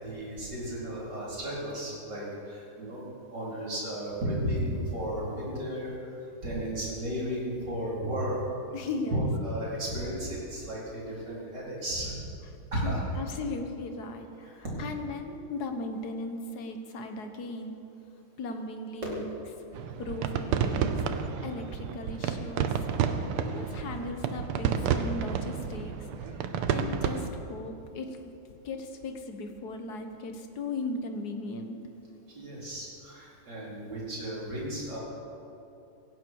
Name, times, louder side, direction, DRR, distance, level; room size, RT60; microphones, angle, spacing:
voice 1, 0.0-3.0 3.3-6.2 6.4-8.4 9.1-12.2 12.7-13.0 14.4-14.6 32.3-35.0, right 1 dB, 50° right, -6 dB, 4.9 m, -34 dB
voice 2, 8.7-9.3 12.7-17.8 18.4-19.2 20.0-21.0 21.4-22.8 23.4-26.4 26.7-28.2 28.6-31.8, left 2 dB, 50° left, 6 dB, 1.6 m, -37 dB
sound 1, 19.7-27.3, right 7 dB, 85° right, 1.8 m, -30 dB
17.5 x 16.0 x 4.7 m, 2.9 s
omnidirectional pair, 2.4 m